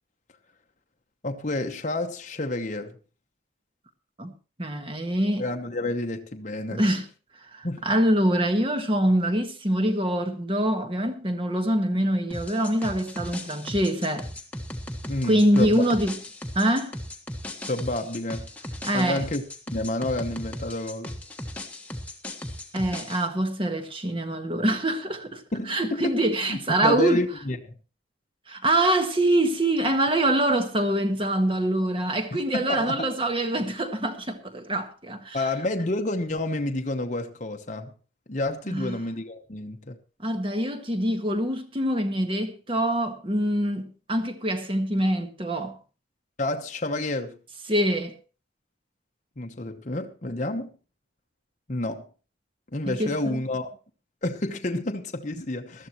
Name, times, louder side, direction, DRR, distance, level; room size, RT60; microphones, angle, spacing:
voice 1, 1.2-3.0 5.4-6.8 7.6-7.8 15.1-15.9 17.7-18.5 18.9-19.4 19.7-21.1 25.5-26.2 26.5-27.6 32.3-33.1 35.3-37.9 38.3-40.0 46.4-47.4 49.4-50.7 51.7-52.0 52.7-53.7 54.2-55.9, left 2 dB, 40° left, 1.0 m, -29 dB
voice 2, 4.6-5.4 6.7-7.0 7.5-14.3 15.2-16.1 16.5-16.9 18.8-19.2 22.7-25.4 25.7-27.2 28.5-35.4 38.7-39.0 40.2-45.8 47.7-48.1 52.8-53.4, right 1 dB, 25° right, 1.5 m, -24 dB
sound 1, 12.3-23.3, left 1 dB, 5° left, 1.4 m, -37 dB
19.5 x 13.0 x 3.0 m
head